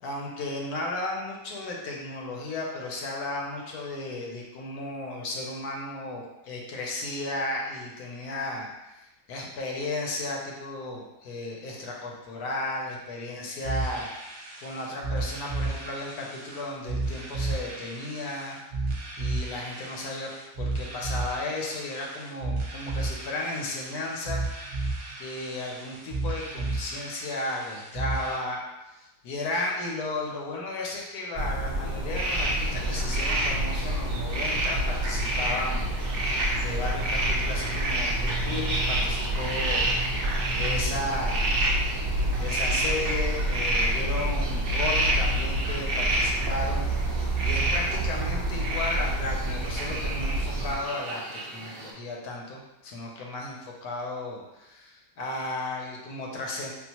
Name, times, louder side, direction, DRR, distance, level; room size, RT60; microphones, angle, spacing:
voice 1, 0.0-8.7 8.9-14.1 14.6-20.3 20.6-24.4 25.2-28.6 28.9-35.9 36.1-39.9 40.5-41.6 42.3-46.9 47.4-56.7, left 2 dB, 75° left, -1 dB, 1.1 m, -34 dB
sound 1, 13.6-28.4, right 3 dB, 55° right, 0.9 m, -33 dB
sound 2, 31.3-50.7, right 1 dB, 25° right, 0.5 m, -29 dB
sound 3, 32.1-51.9, right 1 dB, 85° right, 0.5 m, -30 dB
3.6 x 2.4 x 2.8 m, 0.98 s
omnidirectional pair, 1.7 m